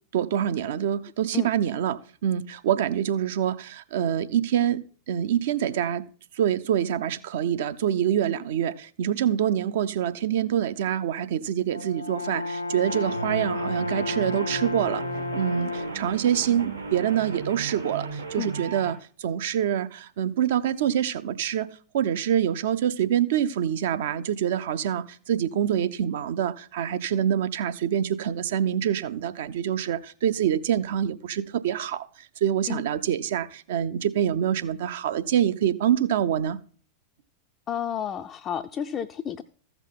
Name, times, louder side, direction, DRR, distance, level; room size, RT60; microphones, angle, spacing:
voice 1, 0.1-6.1 6.4-15.0 15.3-32.0 32.4-36.6, right 10 dB, 55° right, 0.5 m, -26 dB
Brass instrument, 11.7-16.1, left 2 dB, 85° left, 0.5 m, -32 dB
sound 1, 12.9-18.9, right 3 dB, 85° right, 2.0 m, -36 dB
voice 2, 37.7-39.4, left 9 dB, 30° left, 0.4 m, -31 dB
14.5 x 6.0 x 3.7 m
figure-of-eight pair, 90°, 0 cm